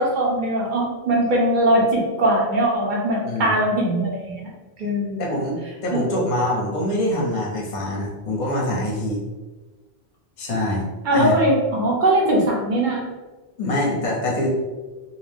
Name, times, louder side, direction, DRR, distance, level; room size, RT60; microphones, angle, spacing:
voice 1, 0.0-4.5 4.8-5.3 5.9-6.0 11.0-13.1, right 1 dB, 55° right, -2 dB, 0.7 m, -20 dB
voice 2, 3.2-3.6 5.2-5.6 5.8-9.2 10.4-11.4 13.6-14.5, left 1 dB, 50° left, -2 dB, 0.7 m, -24 dB
2.4 x 2.1 x 3.3 m, 1.2 s
omnidirectional pair, 1.1 m